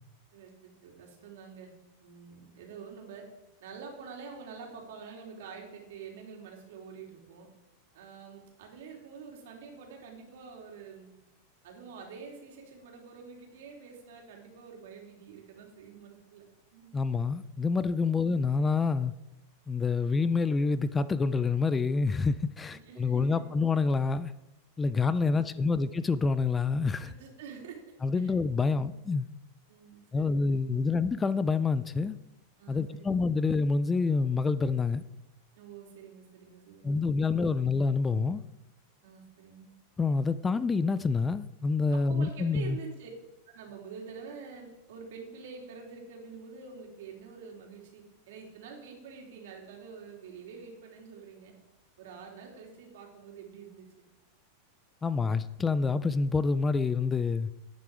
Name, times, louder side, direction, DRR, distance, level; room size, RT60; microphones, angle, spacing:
voice 1, 0.3-1.7 2.0-3.3 3.6-7.5 7.9-11.1 11.6-16.4 16.7-17.0 22.7-23.5 25.2-25.8 27.0-27.8 28.1-28.3 28.7-29.0 29.7-30.9 32.6-33.1 35.5-37.0 37.2-37.6 39.0-39.7 41.9-43.1 43.5-51.5 52.0-54.1, right 6 dB, 70° right, 3.3 m, -47 dB
voice 2, 16.9-19.1 19.7-24.3 24.8-27.1 28.0-29.3 30.1-32.2 32.7-35.0 36.8-38.4 40.0-42.8 55.0-57.5, left 4 dB, 10° left, 0.3 m, -27 dB
11.0 x 9.4 x 4.9 m
supercardioid pair, 160°, 0 cm